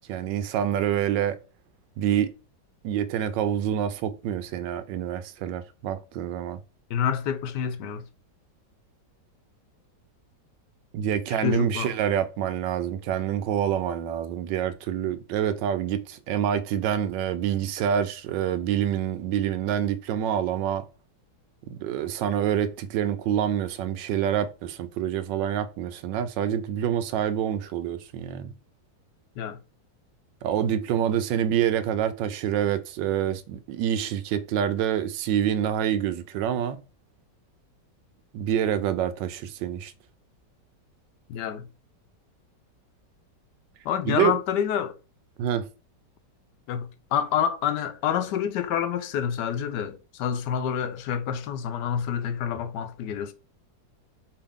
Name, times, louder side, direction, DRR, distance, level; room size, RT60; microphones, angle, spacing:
voice 1, 0.1-1.4 2.0-2.3 2.8-6.6 10.9-20.9 21.7-28.5 30.4-36.8 38.3-39.9 44.0-44.4 45.4-45.7, right 10 dB, 85° right, 1.3 m, -27 dB
voice 2, 6.9-8.0 11.3-12.0 29.4-29.6 41.3-41.7 43.8-45.0 46.7-53.3, left 8 dB, 80° left, 1.2 m, -28 dB
4.8 x 2.8 x 3.5 m
omnidirectional pair, 1.9 m